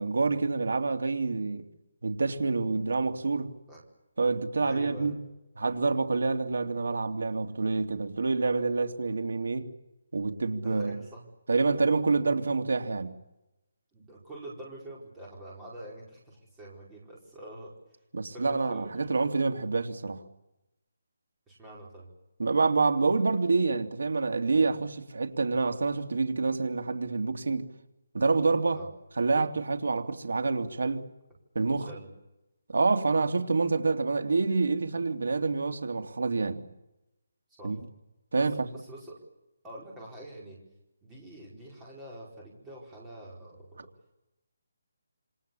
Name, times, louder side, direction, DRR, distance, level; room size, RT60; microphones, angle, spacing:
voice 1, 0.0-1.6 2.0-3.5 4.2-5.1 5.6-9.7 10.1-11.0 11.5-13.1 18.1-20.2 22.4-27.7 28.1-28.8 29.2-31.0 31.5-31.9 32.7-36.6 37.6-37.8 38.3-38.5, right 3 dB, 75° right, 2.9 m, -27 dB
voice 2, 4.6-5.2 10.6-11.3 13.9-17.7 18.3-18.9 21.5-22.1 28.7-28.9 31.8-32.1 37.6-37.8 38.3-39.2 39.6-40.6 41.0-43.9, right 1 dB, 5° right, 4.7 m, -45 dB
28.0 x 26.0 x 7.1 m
hypercardioid pair, 180°, 0 cm